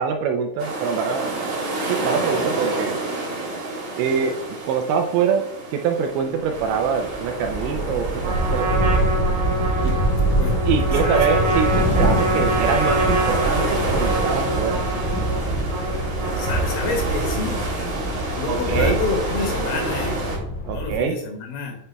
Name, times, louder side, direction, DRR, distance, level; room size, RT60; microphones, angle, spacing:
voice 1, 0.0-1.6 1.9-3.0 4.0-4.3 4.7-5.4 5.7-9.1 9.8-9.9 10.7-14.8 18.5-19.0 20.7-21.2, right 6 dB, 80° right, 5 dB, 2.7 m, -24 dB
sound 1, 0.6-20.4, right 2 dB, 45° right, 3.1 m, -29 dB
sound 2, 6.4-21.0, right 1 dB, 55° left, 4.3 m, -25 dB
Trumpet, 8.2-16.9, right 1 dB, 65° right, 3.8 m, -26 dB
voice 2, 16.4-17.6 18.3-20.2 20.7-21.8, left 4 dB, 90° left, 1 dB, 4.4 m, -28 dB
9.1 x 6.9 x 2.3 m, 0.79 s
omnidirectional pair, 5.7 m